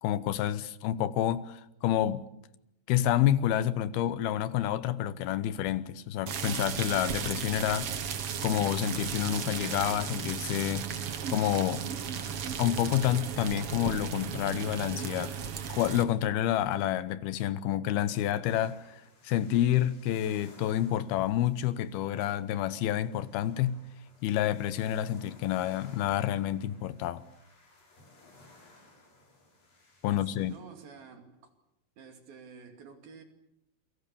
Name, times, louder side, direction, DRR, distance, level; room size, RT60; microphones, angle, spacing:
voice 1, 0.0-2.3 2.9-7.9 8.4-10.9 11.3-11.9 12.6-15.4 15.7-18.8 19.2-23.8 24.2-27.2 30.0-30.5, left 12 dB, 80° left, 2.9 m, -29 dB
sound 1, 6.3-16.0, right 7 dB, 55° right, 1.8 m, -35 dB
sound 2, 18.5-30.6, left 2 dB, 60° left, 8.3 m, -59 dB
voice 2, 30.1-31.5 32.0-33.2, right 5 dB, 70° right, 4.3 m, -50 dB
28.5 x 23.0 x 7.0 m
omnidirectional pair, 4.5 m